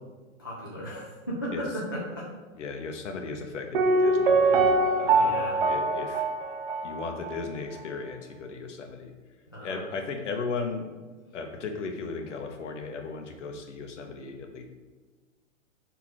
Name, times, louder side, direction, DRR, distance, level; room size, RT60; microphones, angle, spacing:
voice 1, 0.4-2.3 5.2-5.5 9.5-9.8, equal, 20° left, -7 dB, 0.3 m, -35 dB
voice 2, 2.6-5.4 5.6-6.2 6.8-9.1 9.6-10.9 11.3-14.6, left 4 dB, 60° left, 4 dB, 1.1 m, -36 dB
Piano, 3.7-7.5 7.8-7.9, right 3 dB, 40° right, 0.6 m, -24 dB
4.9 x 4.4 x 5.8 m, 1.3 s
hypercardioid pair, 170°, 41 cm